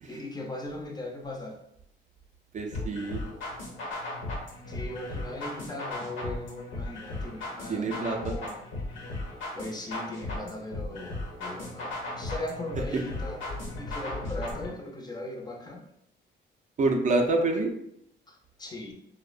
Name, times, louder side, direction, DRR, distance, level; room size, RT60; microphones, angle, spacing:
voice 1, 0.1-1.6 4.7-8.6 9.5-13.4 13.8-15.9 18.3-18.9, left 1 dB, 20° left, 1 dB, 0.4 m, -39 dB
voice 2, 2.5-3.2 7.7-8.3 16.8-17.7, right 2 dB, 40° right, 2 dB, 0.4 m, -27 dB
sound 1, 2.7-14.7, left 2 dB, 75° left, 0.9 m, -36 dB
2.6 x 2.0 x 2.4 m, 0.73 s
cardioid pair, 90°, 20 cm